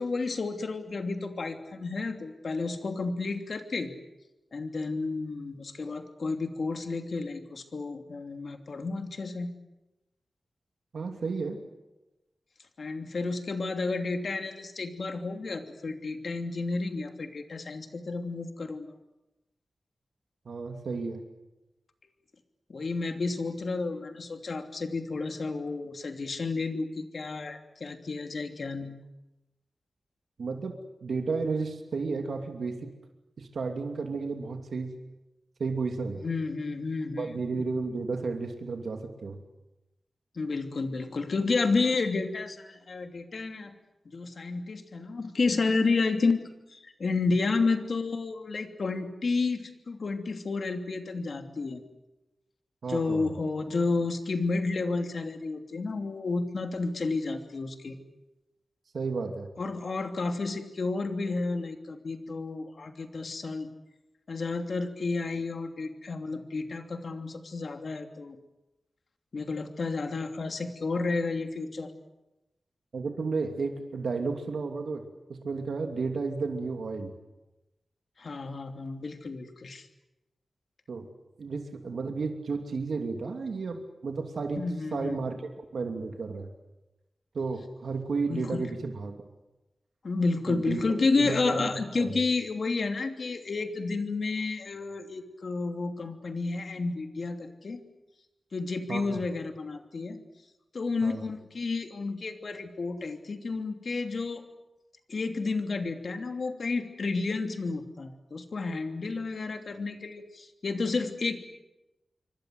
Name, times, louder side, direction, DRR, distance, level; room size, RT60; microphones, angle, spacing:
voice 1, 0.0-3.9 4.5-9.5 12.8-18.9 22.7-29.0 36.2-37.3 40.4-43.7 44.1-46.4 46.7-51.8 52.9-57.9 59.6-63.7 64.3-68.4 69.3-71.9 78.2-79.9 84.6-85.2 88.3-88.7 90.0-97.8 98.5-100.2 100.7-104.4 105.1-111.4, left 3 dB, 60° left, 5 dB, 2.9 m, -31 dB
voice 2, 10.9-11.6 20.4-21.2 30.4-32.9 33.4-34.9 35.6-36.2 37.2-39.4 52.8-53.3 58.9-59.5 72.9-77.1 80.9-81.1 81.4-84.6 84.9-86.5 87.3-89.2 90.5-91.7 92.0-92.2 98.9-99.2 101.0-101.2, right 4 dB, 80° right, 4 dB, 2.8 m, -33 dB
27.0 x 24.5 x 7.9 m, 0.99 s
wide cardioid pair, 105°, 0 cm